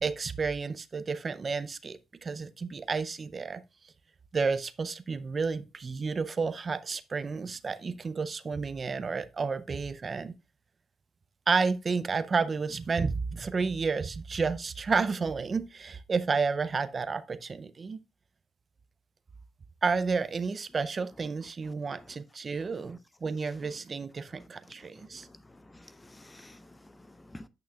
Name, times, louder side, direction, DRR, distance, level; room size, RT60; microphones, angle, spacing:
voice 1, 0.0-3.6 4.3-10.3 11.5-18.0 19.8-25.3, right 4 dB, 35° right, 0.5 m, -31 dB
voice 2, 25.0-27.5, left 1 dB, 15° left, 0.5 m, -51 dB
8.7 x 5.8 x 2.3 m
cardioid pair, 90°, 0 cm